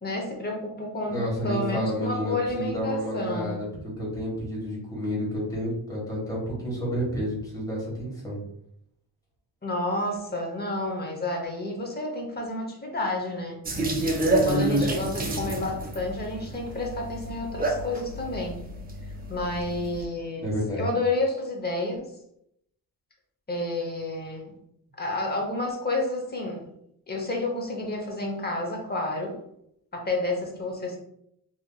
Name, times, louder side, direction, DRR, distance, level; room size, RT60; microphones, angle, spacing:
voice 1, 0.0-3.6 9.6-13.6 14.4-18.6 19.3-20.5 20.8-22.1 23.5-24.5 25.0-26.6 27.1-29.4 29.9-31.0, left 2 dB, 25° left, 1 dB, 0.7 m, -30 dB
voice 2, 1.1-3.7 4.0-8.4 20.4-20.8, equal, 10° left, -6 dB, 1.3 m, -30 dB
sound 1, 13.6-20.0, right 1 dB, 25° right, 0.5 m, -28 dB
2.8 x 2.8 x 2.2 m, 0.75 s
cardioid pair, 95°, 40 cm